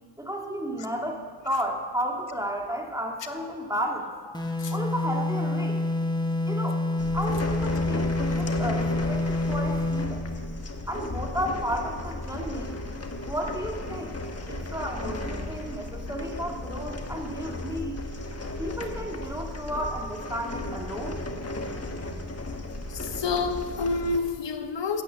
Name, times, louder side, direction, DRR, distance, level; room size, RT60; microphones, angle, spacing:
voice 1, 0.2-4.1 4.7-5.8 6.4-6.9 7.1-10.2 10.9-12.8 13.3-14.2 14.5-18.0 18.6-21.3, equal, 5° right, 1 dB, 1.9 m, -33 dB
sound 1, 4.3-10.2, left 2 dB, 10° left, 1.2 m, -27 dB
sound 2, 7.0-24.2, left 2 dB, 30° left, 1.3 m, -35 dB
voice 2, 22.9-25.0, left 4 dB, 65° left, 8 dB, 1.1 m, -29 dB
9.1 x 9.1 x 7.8 m, 2.1 s
cardioid pair, 60°, 47 cm